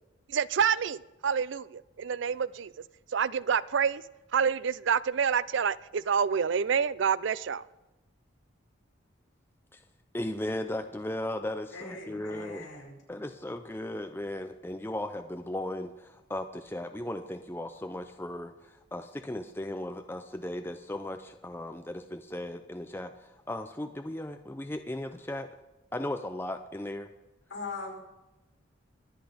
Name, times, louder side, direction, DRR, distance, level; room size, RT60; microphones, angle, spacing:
voice 1, 0.3-2.7 3.1-4.0 4.3-7.6, right 7 dB, 65° right, 19 dB, 0.4 m, -27 dB
voice 2, 10.1-12.7 13.1-25.5 25.9-27.1, left 1 dB, 10° left, 7 dB, 0.5 m, -36 dB
voice 3, 11.7-13.0 27.5-28.0, left 3 dB, 70° left, 0 dB, 5.1 m, -40 dB
23.5 x 8.3 x 5.1 m, 1.0 s
head